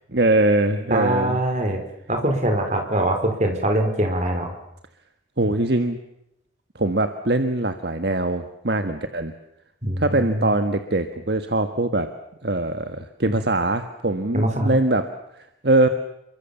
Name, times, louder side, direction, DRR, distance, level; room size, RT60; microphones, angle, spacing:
voice 1, 0.1-1.4 5.4-6.0 6.7-9.3 10.0-12.1 12.4-15.1 15.6-15.9, right 2 dB, 60° right, 8 dB, 1.5 m, -22 dB
voice 2, 0.9-1.8 2.1-4.5 9.8-10.5 14.3-14.8, right 1 dB, 40° right, 4 dB, 4.8 m, -23 dB
28.5 x 23.5 x 7.2 m, 0.84 s
head